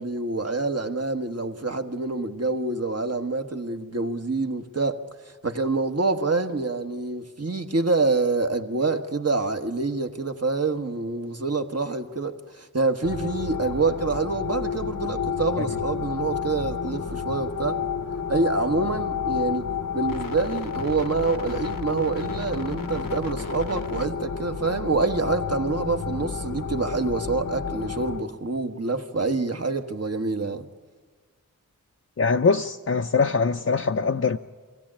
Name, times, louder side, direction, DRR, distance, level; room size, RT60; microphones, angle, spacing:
voice 1, 0.0-5.0 5.4-17.8 18.3-19.7 19.9-30.6, right 3 dB, 50° right, 1.3 m, -26 dB
sound 1, 13.0-28.2, left 6 dB, 80° left, 1.1 m, -31 dB
voice 2, 32.2-34.4, left 4 dB, 50° left, 0.6 m, -22 dB
24.5 x 16.5 x 8.7 m
wide cardioid pair, 45°, 33 cm